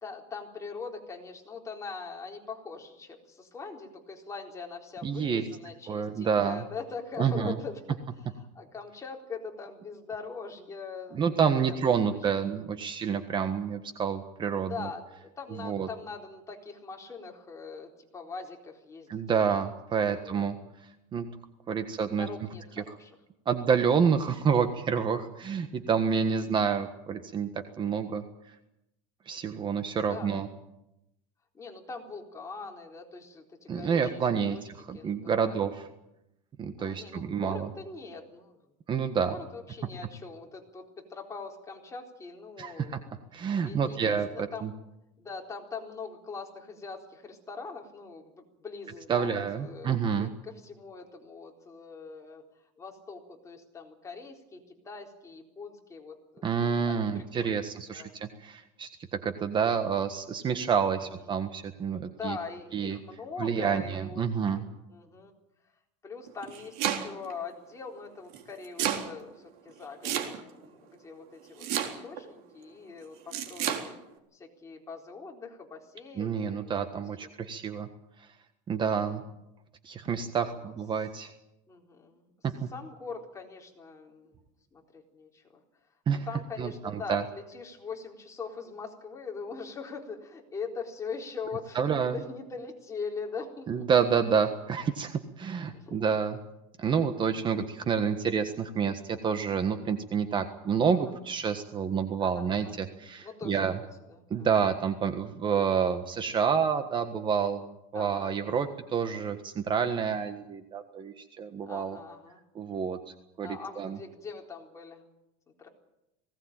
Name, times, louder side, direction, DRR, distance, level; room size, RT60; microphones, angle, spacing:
voice 1, 0.0-12.2 14.6-19.1 20.1-20.7 22.2-23.1 26.0-26.5 30.1-30.4 31.5-34.6 34.9-35.6 36.8-38.6 39.3-43.2 43.6-44.7 45.2-52.4 52.8-58.2 61.0-61.1 62.0-64.6 64.9-65.3 66.0-73.9 74.3-77.3 78.8-79.3 80.6-80.7 81.7-82.3 82.7-84.3 84.7-85.6 86.1-93.9 95.7-96.0 102.2-102.7 103.2-103.8 104.1-104.5 107.9-108.8 111.7-112.4 113.4-115.0 115.6-115.7, left 5 dB, 20° left, 0 dB, 4.1 m, -42 dB
voice 2, 5.0-5.5 5.9-6.6 7.2-7.5 11.1-14.9 15.6-15.9 19.1-20.6 21.1-21.3 21.7-22.3 23.4-27.5 27.8-28.2 29.3-30.5 33.7-35.8 36.6-37.7 38.9-39.3 42.6-43.0 43.3-44.7 49.1-50.3 56.4-58.9 59.2-62.4 62.7-63.0 63.4-64.6 76.2-77.9 78.7-79.2 79.8-81.3 82.4-82.5 86.1-86.2 86.6-87.2 91.7-92.1 93.7-96.4 96.8-103.8 104.3-112.0 112.5-113.0 113.4-114.0, right 6 dB, 30° right, 8 dB, 1.5 m, -28 dB
Domestic sounds home sounds, 66.3-67.3 68.3-69.1 70.0-70.6 71.6-72.2 73.3-73.8, right 10 dB, 60° right, 3.9 m, -30 dB
20.5 x 18.0 x 9.0 m, 0.88 s
supercardioid pair, 140°, 17 cm